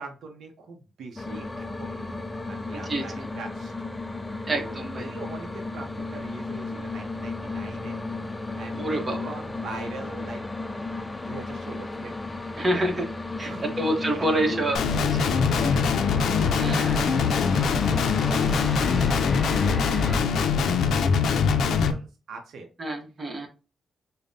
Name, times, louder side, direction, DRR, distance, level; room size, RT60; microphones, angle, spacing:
voice 1, 0.0-3.7 4.0-4.2 4.5-8.0 8.6-10.4 11.3-12.5 13.4-14.6 15.0-15.9 16.5-22.7, right 3 dB, 75° right, 4 dB, 0.6 m, -42 dB
sound 1, 1.2-20.2, left 2 dB, 15° left, 0.3 m, -33 dB
voice 2, 2.7-3.3 4.5-5.1 8.7-9.3 12.6-13.1 13.4-14.8 15.2-15.3 16.6-17.1 22.8-23.5, right 1 dB, 30° right, 3 dB, 0.9 m, -27 dB
Guitar, 14.7-21.9, left 6 dB, 85° left, 0.4 m, -23 dB
5.1 x 2.1 x 2.6 m, 0.32 s
cardioid pair, 110°, 0 cm